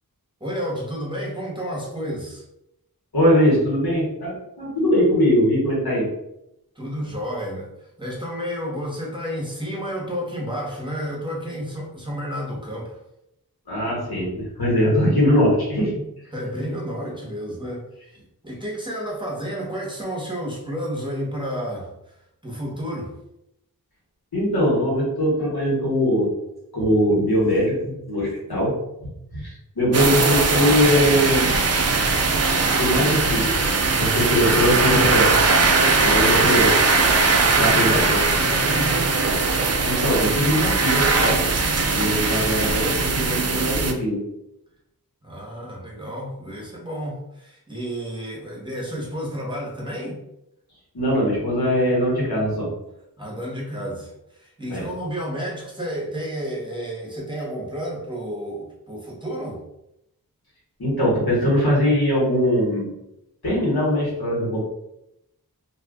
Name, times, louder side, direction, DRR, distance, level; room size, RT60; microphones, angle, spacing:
voice 1, 0.4-2.4 6.7-13.0 16.3-17.9 18.4-22.1 22.4-23.1 37.3-38.0 38.3-39.1 45.2-50.2 53.2-59.6, equal, 15° right, -4 dB, 1.1 m, -31 dB
voice 2, 3.1-6.1 13.7-15.9 24.3-26.3 26.7-28.8 29.3-31.5 32.6-33.5 34.0-35.4 36.0-36.8 37.6-38.3 39.8-41.4 41.9-44.3 50.9-52.7 54.7-54.9 60.8-62.9 63.4-64.6, equal, 80° left, -5 dB, 1.4 m, -21 dB
sound 1, 29.9-43.9, right 4 dB, 45° right, 0.5 m, -20 dB
2.7 x 2.4 x 3.6 m, 0.84 s
wide cardioid pair, 40°, 37 cm